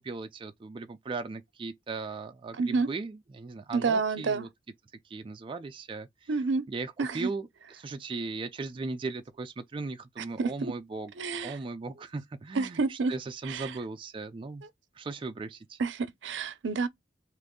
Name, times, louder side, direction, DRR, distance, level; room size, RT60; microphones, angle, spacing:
voice 1, 0.0-4.5 5.0-6.3 6.7-11.1 11.4-14.6 14.9-15.8, right 3 dB, 30° right, 0.3 m, -38 dB
voice 2, 2.6-2.9 3.7-4.5 6.3-6.6 7.0-7.3 10.2-10.7 11.2-11.5 12.6-13.1 13.5-13.7 15.8-16.9, right 4 dB, 75° right, 0.5 m, -29 dB
3.0 x 2.5 x 3.6 m
head